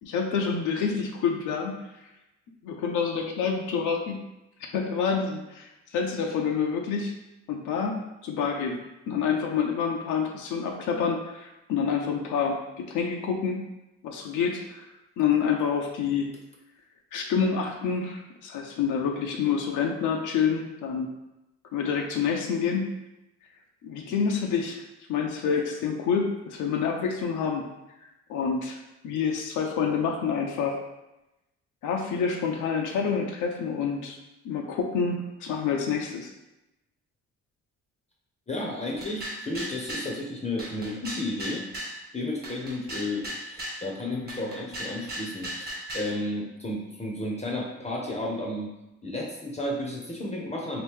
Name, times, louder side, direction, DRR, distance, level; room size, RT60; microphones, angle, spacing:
voice 1, 0.0-1.7 2.6-4.2 4.7-7.1 7.5-8.0 8.2-8.8 9.1-13.6 14.0-14.9 15.2-16.3 17.1-21.1 21.7-22.9 23.8-24.8 25.1-27.6 28.3-28.8 29.0-30.8 31.8-34.2 34.4-36.3, left 6 dB, 80° left, 1 dB, 0.6 m, -27 dB
voice 2, 38.5-41.6 42.1-48.7 49.0-50.8, left 1 dB, 20° left, -2 dB, 0.6 m, -32 dB
sound 1, 39.0-40.1 40.6-42.0 42.4-43.8 44.3-46.1, right 1 dB, 30° right, 1.1 m, -36 dB
2.9 x 2.6 x 3.5 m, 0.93 s
cardioid pair, 90°, 30 cm